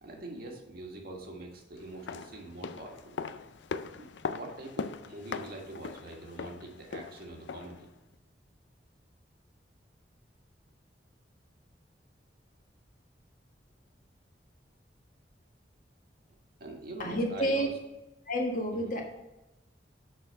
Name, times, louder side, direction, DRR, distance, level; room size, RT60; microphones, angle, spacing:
voice 1, 0.0-3.1 4.0-7.9 16.6-17.7, right 1 dB, 60° right, 1 dB, 1.8 m, -44 dB
sound 1, 1.9-7.9 8.1-8.2, left 5 dB, 80° left, 0.4 m, -40 dB
voice 2, 17.0-17.7 18.3-19.0, equal, 50° left, 1 dB, 1.5 m, -29 dB
6.6 x 5.5 x 5.5 m, 0.97 s
head